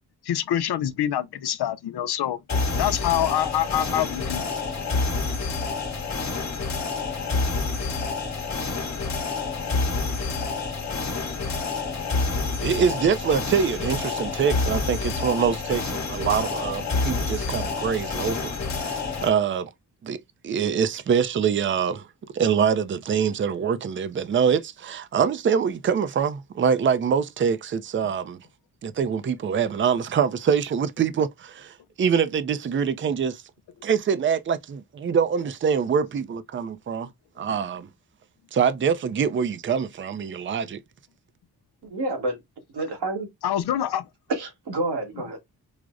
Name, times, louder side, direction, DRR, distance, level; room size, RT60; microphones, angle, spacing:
voice 1, 0.2-2.4 2.8-4.5 43.4-44.0, left 11 dB, 80° left, 0.6 m, -25 dB
sound 1, 2.5-19.3, left 4 dB, 45° left, 1.0 m, -28 dB
voice 2, 12.6-19.7 20.0-22.1 22.3-28.5 28.8-33.4 33.8-37.1 37.4-37.9 38.5-40.8, right 7 dB, 30° right, 0.4 m, -24 dB
voice 3, 41.9-42.4 42.7-43.3 44.3-45.4, right 2 dB, 90° right, 1.3 m, -28 dB
4.7 x 2.0 x 2.4 m
wide cardioid pair, 100°, 39 cm